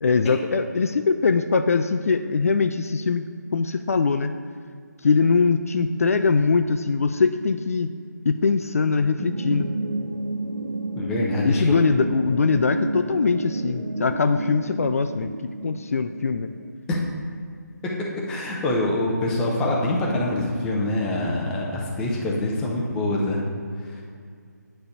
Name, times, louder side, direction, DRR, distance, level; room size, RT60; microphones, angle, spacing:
voice 1, 0.0-4.3 5.0-7.9 8.3-9.7 11.4-15.3 15.6-16.5, left 4 dB, 50° left, 8 dB, 0.3 m, -22 dB
sound 1, 9.2-16.7, right 2 dB, 75° right, 1.0 m, -31 dB
voice 2, 10.9-11.8 16.9-17.0 18.3-23.4 23.9-24.0, left 1 dB, 5° left, -3 dB, 0.6 m, -25 dB
8.9 x 3.4 x 6.6 m, 2.1 s
figure-of-eight pair, 160°, 10 cm